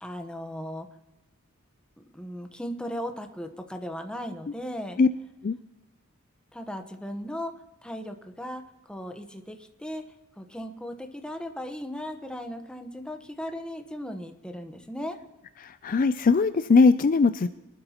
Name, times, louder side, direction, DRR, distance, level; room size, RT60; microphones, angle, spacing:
voice 1, 0.0-0.9 2.0-5.0 6.5-7.5 7.8-10.0 10.4-15.2, equal, 5° left, 5 dB, 1.0 m, -37 dB
voice 2, 15.8-17.5, left 4 dB, 40° left, 12 dB, 0.4 m, -20 dB
24.0 x 12.0 x 2.9 m, 1.0 s
head